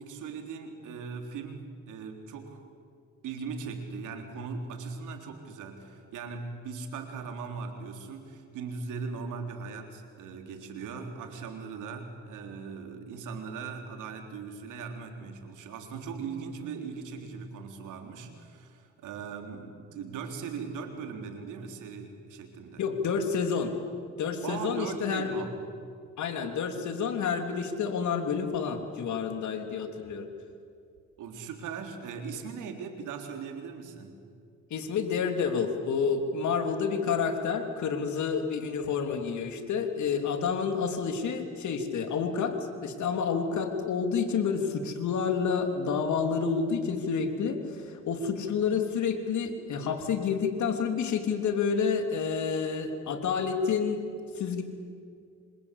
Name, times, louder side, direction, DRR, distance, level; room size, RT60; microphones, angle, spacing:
voice 1, 0.0-2.6 3.2-22.8 24.4-25.6 31.2-34.3, right 5 dB, 85° right, 4 dB, 3.8 m, -39 dB
voice 2, 22.8-23.7 24.2-25.4 26.2-30.3 34.7-54.0 54.4-54.6, left 6 dB, 70° left, 5 dB, 3.5 m, -29 dB
27.5 x 25.5 x 8.5 m, 2.3 s
cardioid pair, 90°, 30 cm